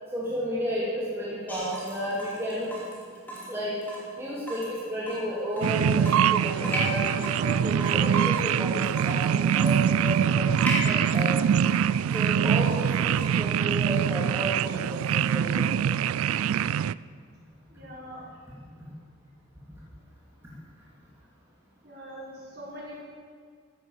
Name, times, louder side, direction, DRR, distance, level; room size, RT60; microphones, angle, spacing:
voice 1, 0.1-2.7 3.5-3.8 4.1-11.4 12.1-15.8, equal, 10° right, -7 dB, 2.7 m, -32 dB
Water tap faucet / Drip, 1.5-13.4, equal, 10° left, 3.2 m, -38 dB
sound 1, 5.6-16.9, right 8 dB, 85° right, 0.3 m, -24 dB
voice 2, 17.7-18.2 21.8-23.0, equal, 50° right, -6 dB, 5.4 m, -42 dB
14.5 x 11.5 x 7.4 m, 2.1 s
head